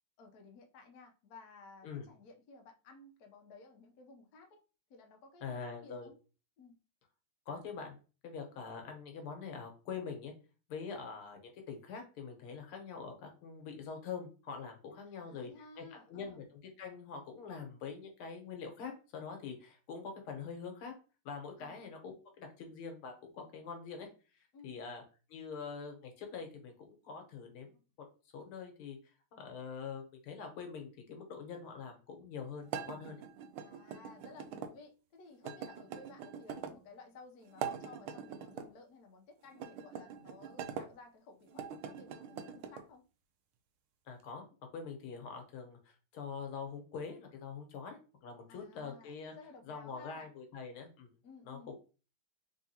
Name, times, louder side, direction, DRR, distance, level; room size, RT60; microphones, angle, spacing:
voice 1, 0.2-4.6 4.9-6.2 6.6-6.8 15.0-16.4 21.6-21.8 24.5-24.8 33.6-43.0 48.5-50.3 51.2-51.7, left 4 dB, 60° left, 3 dB, 1.0 m, -56 dB
voice 2, 5.4-6.1 7.5-8.0 8.2-10.3 10.7-15.5 15.8-16.4 16.8-20.9 21.3-24.1 24.3-25.0 25.3-27.8 28.3-29.0 29.3-33.2 44.1-44.4 44.7-49.3 49.7-51.1 51.5-51.7, left 5 dB, 85° left, 4 dB, 1.9 m, -44 dB
sound 1, 32.7-34.7 35.4-36.8 37.5-38.7 39.5-40.9 41.5-42.8, right 7 dB, 85° right, 1.4 m, -43 dB
3.7 x 3.6 x 2.7 m, 0.34 s
omnidirectional pair, 2.3 m